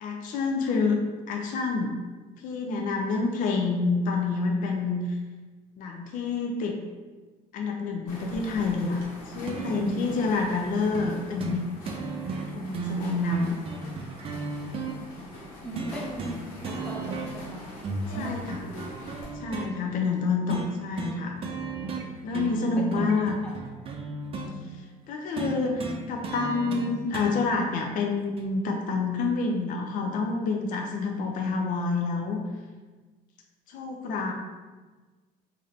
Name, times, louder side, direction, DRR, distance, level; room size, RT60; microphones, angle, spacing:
voice 1, 0.0-1.0 1.3-1.9 2.4-5.2 5.8-6.8 7.5-9.0 9.3-11.7 12.5-13.5 18.1-18.6 19.3-21.4 22.2-23.3 25.1-32.4 33.7-34.3, left 4 dB, 60° left, 2 dB, 0.5 m, -28 dB
sound 1, 8.1-19.3, left 1 dB, 75° left, 1.2 m, -43 dB
sound 2, 9.5-10.1 10.9-11.1 11.4-11.6 11.9-14.9 15.8-16.4 16.6-17.5 17.8-19.7 20.5-20.7 21.0-21.2 21.4-22.1 22.3-24.5 25.4-27.3 28.4-28.5, right 4 dB, 40° right, 0.5 m, -34 dB
voice 2, 15.6-18.5 22.8-23.9, equal, 5° left, -2 dB, 0.7 m, -40 dB
3.2 x 2.6 x 4.1 m, 1.3 s
cardioid pair, 125°, 15 cm